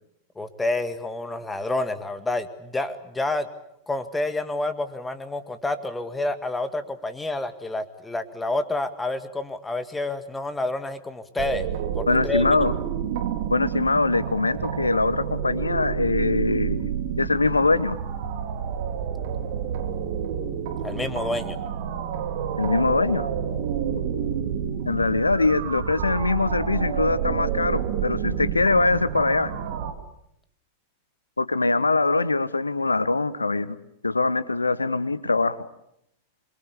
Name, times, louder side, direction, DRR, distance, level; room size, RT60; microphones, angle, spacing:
voice 1, 0.4-3.5 3.9-11.7 11.9-12.4 20.8-21.6, left 2 dB, 10° left, 11 dB, 2.0 m, -28 dB
sound 1, 11.4-29.9, right 8 dB, 50° right, 2.8 m, -29 dB
voice 2, 12.1-12.7 13.5-18.0 22.6-23.3 24.9-29.5 31.4-33.8 34.0-35.7, left 3 dB, 80° left, 16 dB, 1.2 m, -23 dB
26.5 x 23.0 x 8.4 m, 0.78 s
figure-of-eight pair, 90°, 0 cm